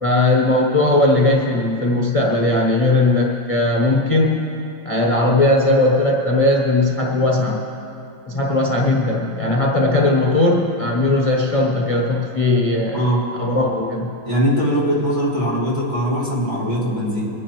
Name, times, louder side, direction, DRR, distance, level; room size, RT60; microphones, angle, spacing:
voice 1, 0.0-4.5 4.8-7.6 8.3-13.0 13.4-14.1, left 2 dB, 60° left, -2 dB, 0.3 m, -18 dB
voice 2, 14.2-17.3, equal, 30° right, -7 dB, 3.1 m, -20 dB
23.0 x 10.0 x 3.1 m, 2.7 s
omnidirectional pair, 2.3 m